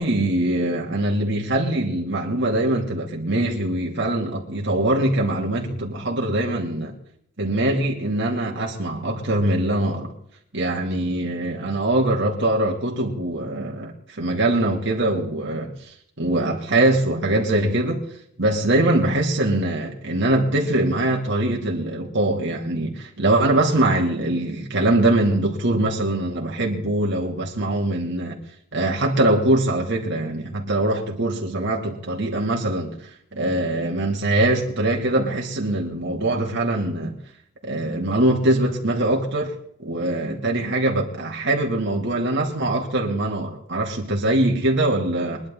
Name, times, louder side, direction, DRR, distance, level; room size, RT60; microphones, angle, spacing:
voice 1, 0.0-6.9 7.4-10.1 10.5-18.0 18.4-28.4 28.7-37.2 37.6-39.5 39.8-45.4, right 1 dB, 65° right, 2.5 m, -22 dB
23.5 x 10.5 x 3.8 m
head